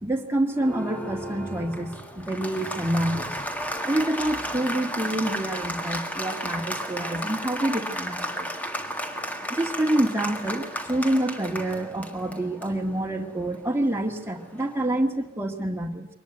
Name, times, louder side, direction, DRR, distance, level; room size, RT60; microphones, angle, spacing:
voice 1, 0.0-3.4 3.8-8.5 9.5-16.1, right 1 dB, 10° right, 2 dB, 2.0 m, -27 dB
Applause, 0.5-14.9, equal, 10° left, 1.7 m, -34 dB
23.5 x 20.5 x 8.1 m, 0.82 s
head